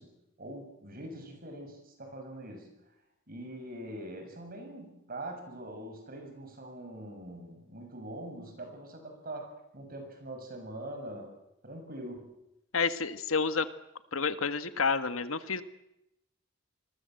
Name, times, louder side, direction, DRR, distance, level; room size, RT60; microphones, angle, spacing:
voice 1, 0.0-2.7 3.3-11.3 11.6-12.4, right 1 dB, 45° right, 5 dB, 7.0 m, -43 dB
voice 2, 12.7-13.7 14.1-15.6, left 5 dB, 90° left, 10 dB, 1.6 m, -29 dB
27.5 x 21.0 x 7.8 m, 0.85 s
head